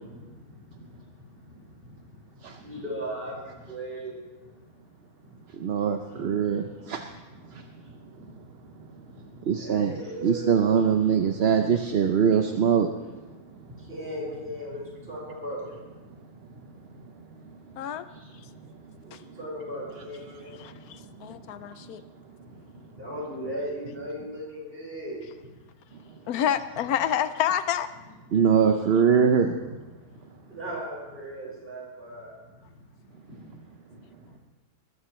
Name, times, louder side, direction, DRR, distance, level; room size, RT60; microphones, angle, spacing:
voice 1, 2.6-3.4 3.7-4.1 9.5-10.8 13.9-14.8 15.1-15.7 19.4-20.5 23.0-25.2 28.7-28.8 30.5-32.3, right 1 dB, 35° right, -4 dB, 5.4 m, -36 dB
voice 2, 5.6-7.0 9.5-12.9 28.3-29.5, right 7 dB, 55° right, 5 dB, 0.8 m, -22 dB
voice 3, 20.6-22.0 26.3-27.9, left 10 dB, 80° left, 12 dB, 1.1 m, -28 dB
20.0 x 14.5 x 3.2 m, 1.2 s
omnidirectional pair, 1.6 m